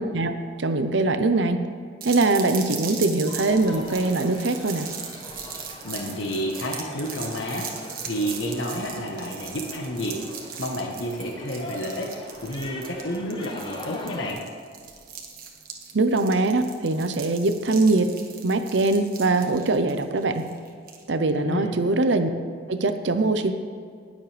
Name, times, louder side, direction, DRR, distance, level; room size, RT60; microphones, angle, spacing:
voice 1, 0.0-1.6 2.0-4.9 15.9-18.1 18.4-20.5 21.1-22.3 22.7-23.5, right 2 dB, 65° right, 8 dB, 0.7 m, -22 dB
sound 1, 2.0-21.0, right 7 dB, 50° right, 1.4 m, -39 dB
sound 2, 3.3-14.3, left 1 dB, 25° left, 1.0 m, -41 dB
voice 2, 5.8-10.2 10.6-14.4 21.3-21.7, equal, 70° left, 0 dB, 1.2 m, -30 dB
19.5 x 7.4 x 3.4 m, 2.2 s
head